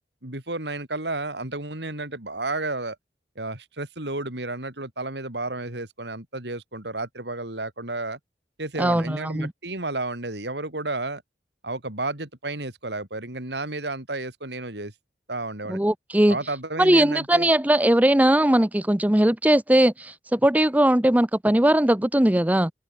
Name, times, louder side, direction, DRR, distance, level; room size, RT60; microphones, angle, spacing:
voice 1, 0.2-3.0 3.4-8.2 8.6-11.2 11.6-14.9 15.3-15.8 16.3-17.5, right 2 dB, 75° right, 4.4 m, -32 dB
voice 2, 8.8-9.5 15.7-16.4 16.8-22.7, right 1 dB, 10° right, 0.7 m, -19 dB
open air
head